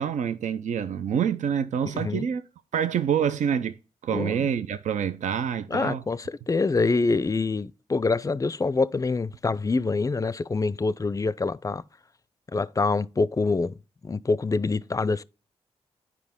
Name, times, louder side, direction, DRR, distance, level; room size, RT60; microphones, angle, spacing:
voice 1, 0.0-2.4 2.7-3.8 4.0-6.0, right 8 dB, 75° right, 0.5 m, -26 dB
voice 2, 1.9-2.3 4.1-4.5 5.7-11.8 12.5-13.8 14.0-15.2, left 3 dB, 25° left, 0.4 m, -25 dB
9.9 x 4.7 x 3.6 m
supercardioid pair, 45°, 13 cm